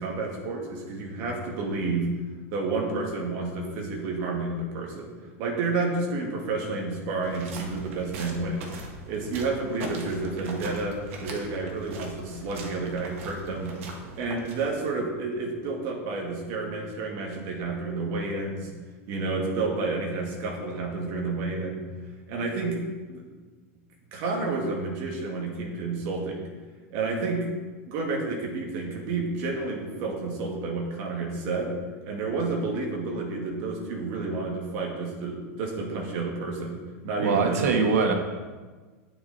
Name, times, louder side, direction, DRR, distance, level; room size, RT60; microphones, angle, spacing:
voice 1, 0.0-2.1 2.5-5.1 5.4-8.7 9.1-13.8 14.2-18.7 19.1-21.9 22.3-22.8 23.1-23.2 24.1-26.5 26.9-27.4 27.9-31.8 32.0-37.6, right 3 dB, 40° right, 0 dB, 2.0 m, -30 dB
sound 1, 7.2-14.9, right 3 dB, 60° right, 1.7 m, -40 dB
voice 2, 37.2-38.1, right 4 dB, 90° right, 3 dB, 1.7 m, -22 dB
9.1 x 8.6 x 4.2 m, 1.4 s
supercardioid pair, 175°, 8 cm